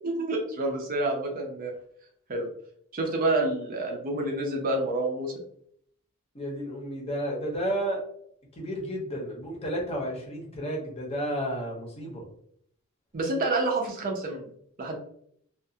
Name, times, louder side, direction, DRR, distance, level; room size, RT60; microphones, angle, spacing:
voice 1, 0.0-1.7 2.3-2.5 2.9-5.3 13.1-14.5 14.8-15.0, right 2 dB, 40° right, 1 dB, 0.5 m, -28 dB
voice 2, 6.3-8.0 8.5-12.2, equal, 30° left, -1 dB, 0.7 m, -32 dB
2.4 x 2.3 x 2.7 m, 0.66 s
head